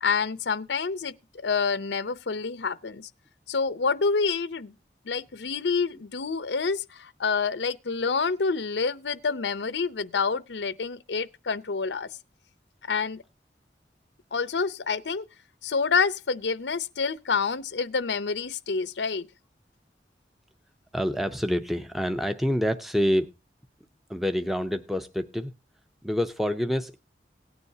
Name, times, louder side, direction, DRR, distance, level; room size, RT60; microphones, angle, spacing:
voice 1, 0.0-3.1 3.5-4.7 5.0-12.1 12.8-13.2 14.3-15.2 15.6-19.3, left 5 dB, 85° left, 0.7 m, -28 dB
voice 2, 20.9-23.3 24.1-25.5 26.0-27.0, equal, ahead, 0.5 m, -27 dB
18.0 x 9.6 x 2.8 m
head